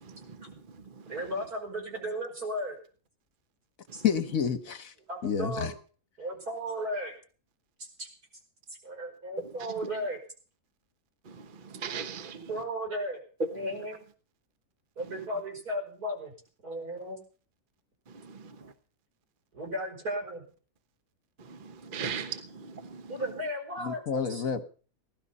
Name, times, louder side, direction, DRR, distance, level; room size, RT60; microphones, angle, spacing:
voice 1, 1.1-2.8 3.9-4.0 5.1-5.7 6.2-7.1 7.8-8.1 8.8-10.2 12.3-13.2 13.5-14.0 15.0-16.3 16.6-17.2 19.5-20.4 23.1-24.0 24.3-24.4, equal, 75° right, 5.8 m, -35 dB
voice 2, 4.0-4.9 5.2-5.7 23.8-24.6, left 7 dB, 65° left, 1.6 m, -29 dB
voice 3, 11.7-12.4 21.5-23.0, right 7 dB, 35° right, 1.2 m, -37 dB
18.5 x 12.0 x 5.5 m
omnidirectional pair, 1.6 m